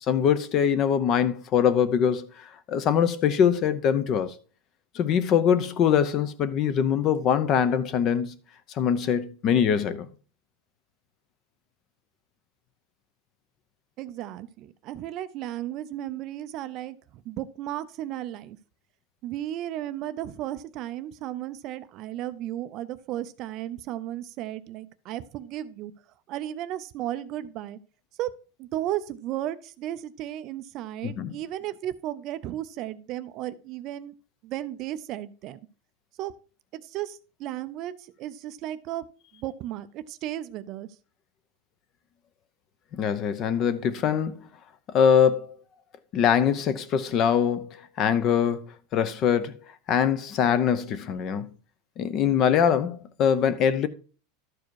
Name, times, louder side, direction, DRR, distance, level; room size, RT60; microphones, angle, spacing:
voice 1, 0.1-4.3 4.9-8.4 8.7-10.1 31.0-31.3 42.9-44.4 44.9-45.5 46.1-49.6 49.9-51.5 52.0-53.9, left 8 dB, 30° left, 0.7 m, -23 dB
voice 2, 14.0-18.6 19.2-25.9 26.3-27.8 28.2-28.3 28.6-34.1 34.4-35.6 36.2-36.3 36.7-39.1 39.3-40.9, right 13 dB, 35° right, 0.5 m, -34 dB
12.0 x 4.8 x 4.6 m
supercardioid pair, 160°, 0 cm